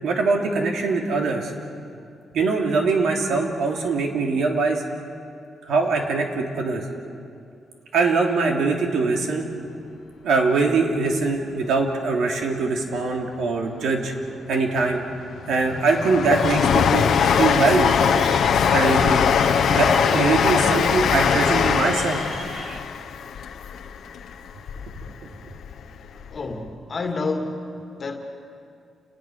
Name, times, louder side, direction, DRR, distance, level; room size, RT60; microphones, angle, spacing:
voice 1, 0.0-1.5 2.3-4.8 5.6-6.8 7.9-9.5 10.2-14.1 14.5-15.0 15.5-17.9 18.7-19.3 19.7-22.2 24.9-25.0, right 4 dB, 75° right, 1 dB, 3.0 m, -22 dB
Train, 14.9-25.1 25.5-26.4 26.7-26.8, left 7 dB, 65° left, 1.0 m, -21 dB
Crowd, 16.3-22.8, right 3 dB, 45° right, 2.1 m, -36 dB
voice 2, 26.3-27.7 28.0-28.2, left 3 dB, 30° left, 4 dB, 2.0 m, -29 dB
29.5 x 20.0 x 6.5 m, 2.4 s
wide cardioid pair, 175°, 0 cm